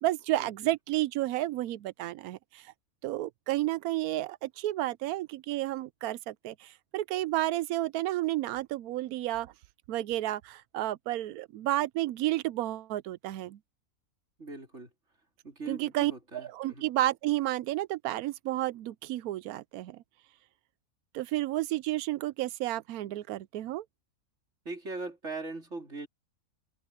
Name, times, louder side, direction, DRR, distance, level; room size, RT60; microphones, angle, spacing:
voice 1, 0.0-2.6 3.0-9.5 9.9-13.6 15.7-20.0 21.1-23.8, right 15 dB, 85° right, 1.1 m, -31 dB
voice 2, 14.4-14.9 15.4-16.9 24.7-26.1, right 3 dB, 50° right, 4.3 m, -40 dB
open air
omnidirectional pair, 1.5 m